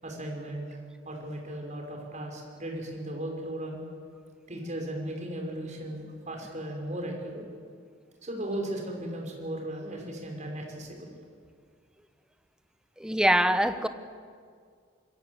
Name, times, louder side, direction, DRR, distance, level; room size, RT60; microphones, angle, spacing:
voice 1, 0.0-0.8 1.0-3.8 4.5-7.4 8.2-11.1, right 1 dB, 40° right, 1 dB, 5.7 m, -36 dB
voice 2, 13.0-13.9, right 1 dB, 5° right, 10 dB, 1.1 m, -23 dB
26.5 x 22.5 x 8.1 m, 2.1 s
head